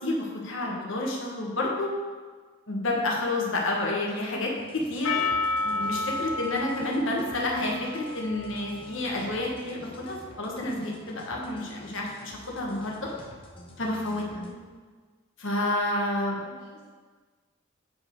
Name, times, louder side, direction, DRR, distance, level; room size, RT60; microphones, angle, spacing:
voice 1, 0.0-1.9 2.7-5.3 5.6-13.1 13.8-14.4 15.4-16.4, left 2 dB, 65° left, -2 dB, 1.4 m, -29 dB
sound 1, 4.6-14.6, left 1 dB, 25° left, 0.8 m, -49 dB
Percussion, 5.0-9.6, left 3 dB, 80° left, 0.5 m, -32 dB
voice 2, 14.3-14.6 16.4-16.9, equal, 50° left, -6 dB, 1.1 m, -50 dB
8.2 x 5.0 x 4.7 m, 1.5 s
head